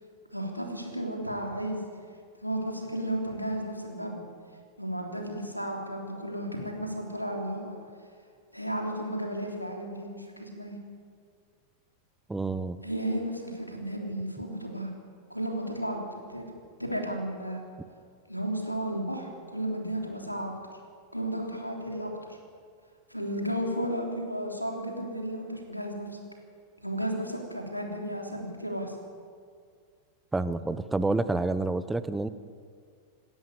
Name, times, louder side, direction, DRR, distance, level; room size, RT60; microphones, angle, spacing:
voice 1, 0.3-1.8 2.4-4.2 4.8-7.8 8.5-10.8 12.8-14.9 15.3-16.4 16.8-17.6 18.3-20.5 21.1-22.4 23.1-26.2 26.8-28.9, right 1 dB, 90° left, 1 dB, 3.3 m, -33 dB
voice 2, 12.3-12.8 30.3-32.3, right 2 dB, 10° right, 13 dB, 0.9 m, -28 dB
27.0 x 12.5 x 8.0 m, 2.1 s
figure-of-eight pair, 90°, 0 cm